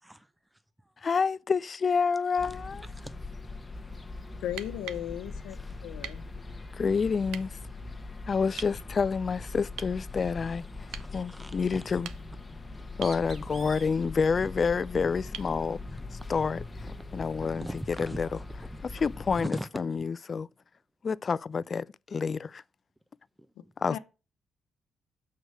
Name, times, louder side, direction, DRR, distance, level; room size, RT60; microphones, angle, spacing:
voice 1, 0.0-0.9 2.5-3.1 3.8-4.0 10.9-11.9 13.0-13.9 15.0-15.1 15.9-16.3 16.8-16.9 17.4-19.0 19.3-19.7 20.0-20.1 23.4-23.5, right 1 dB, 5° right, 0.7 m, -43 dB
voice 2, 1.0-2.9 6.8-7.6 8.3-12.1 13.0-15.8 16.3-18.6 19.0-20.5 21.0-22.6 23.8-24.0, left 5 dB, 40° left, 0.3 m, -29 dB
sound 1, 2.4-19.5, left 3 dB, 20° left, 1.1 m, -41 dB
voice 3, 4.4-6.3 23.6-24.0, left 11 dB, 90° left, 0.8 m, -37 dB
sound 2, 4.4-5.1 6.0-6.2 7.3-7.5 8.6-8.8 9.8-10.0 10.9-11.1 11.9-12.5 13.0-13.2 15.3-15.6 17.4-17.5, right 9 dB, 85° right, 0.6 m, -42 dB
Bird, 12.6-17.5, right 4 dB, 50° right, 1.6 m, -53 dB
6.4 x 4.7 x 6.3 m
cardioid pair, 80°, 0 cm